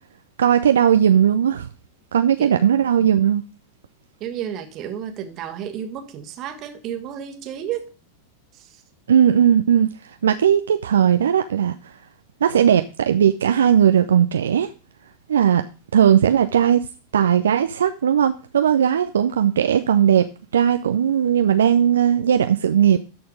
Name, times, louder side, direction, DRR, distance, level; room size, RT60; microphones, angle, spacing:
voice 1, 0.4-1.7 2.1-3.4 9.1-11.9 12.4-14.7 15.3-15.6 15.9-16.8 17.1-20.3 20.5-23.0, right 9 dB, 65° right, 0.5 m, -17 dB
voice 2, 4.2-7.9 8.5-8.8, right 9 dB, 35° right, 1.5 m, -32 dB
13.0 x 4.4 x 5.0 m
figure-of-eight pair, 90°, 0 cm